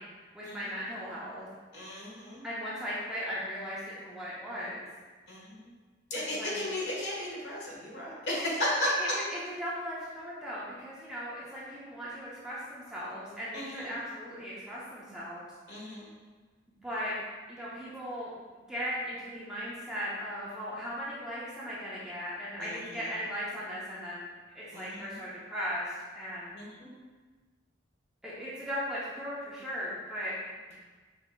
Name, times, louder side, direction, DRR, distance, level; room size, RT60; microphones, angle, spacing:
voice 1, 0.0-1.5 2.4-4.9 6.1-6.6 9.0-15.4 16.8-17.1 17.5-18.3 18.7-24.3 24.5-26.5 28.2-30.4, equal, 5° right, -9 dB, 0.6 m, -37 dB
voice 2, 1.7-2.4 5.3-5.7 6.1-8.9 13.5-14.0 15.7-16.1 22.6-23.1 24.7-25.2 26.5-27.0, left 1 dB, 65° left, -5 dB, 1.2 m, -35 dB
6.1 x 2.8 x 2.2 m, 1.4 s
head